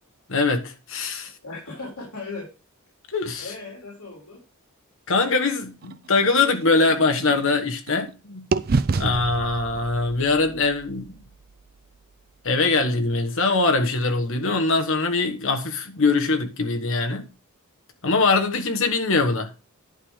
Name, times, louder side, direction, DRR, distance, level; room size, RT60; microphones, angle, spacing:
voice 1, 0.3-1.3 3.1-3.5 5.1-8.4 8.9-11.1 12.4-17.2 18.0-19.6, left 3 dB, 60° left, 1.3 m, -22 dB
voice 2, 1.4-2.5 3.4-4.4, left 3 dB, 80° left, 3.7 m, -37 dB
sound 1, 5.8-8.1 8.5-12.5, right 4 dB, 45° right, 0.4 m, -30 dB
11.0 x 3.7 x 6.5 m
head